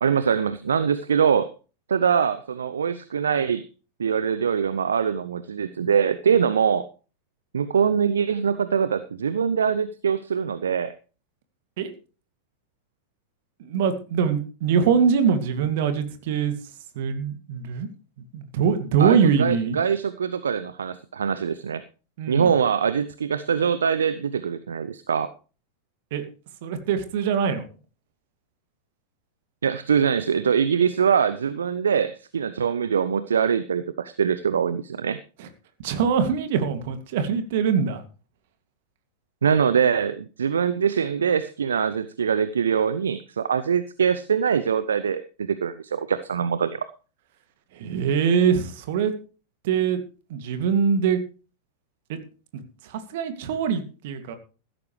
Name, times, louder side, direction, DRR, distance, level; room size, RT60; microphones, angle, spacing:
voice 1, 0.0-1.5 1.9-3.6 4.0-6.9 7.5-10.9 19.0-21.8 22.3-25.3 29.6-35.2 39.4-46.8, right 7 dB, 70° right, 14 dB, 0.6 m, -23 dB
voice 2, 13.6-16.6 17.0-17.9 18.3-19.8 22.2-22.5 26.1-26.2 26.6-27.7 35.4-35.5 35.8-38.0 47.7-49.1 49.6-50.0 50.3-51.2 52.1-52.2 52.5-54.4, right 6 dB, 55° right, 8 dB, 2.3 m, -23 dB
15.5 x 13.0 x 3.2 m, 0.36 s
figure-of-eight pair, 90°, 0 cm